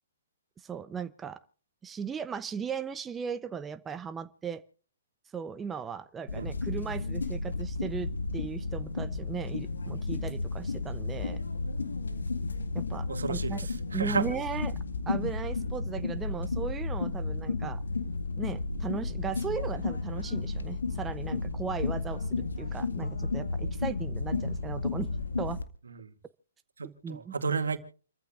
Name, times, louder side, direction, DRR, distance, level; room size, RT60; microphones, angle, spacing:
voice 1, 0.6-1.4 1.8-4.6 5.3-11.4 12.7-13.6 13.9-14.7 15.1-17.8 18.4-25.1 25.4-25.6 26.8-27.3, right 7 dB, 15° right, 0.7 m, -37 dB
sound 1, 6.3-25.6, left 3 dB, 85° left, 2.0 m, -33 dB
voice 2, 13.1-14.3 17.6-17.7 25.9-26.1 26.8-27.8, right 5 dB, 80° right, 2.2 m, -33 dB
29.0 x 14.5 x 2.5 m
hypercardioid pair, 135°, 0 cm